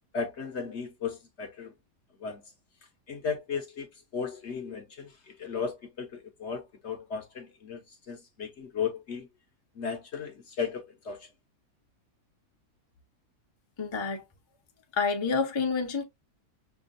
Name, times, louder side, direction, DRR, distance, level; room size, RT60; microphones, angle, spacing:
voice 1, 0.1-1.7 2.2-2.4 3.1-3.9 4.1-9.3 9.7-11.3, left 6 dB, 55° left, 0.9 m, -35 dB
voice 2, 13.8-14.2 15.0-16.0, left 5 dB, 30° left, 0.5 m, -28 dB
5.8 x 2.4 x 2.5 m
omnidirectional pair, 1.7 m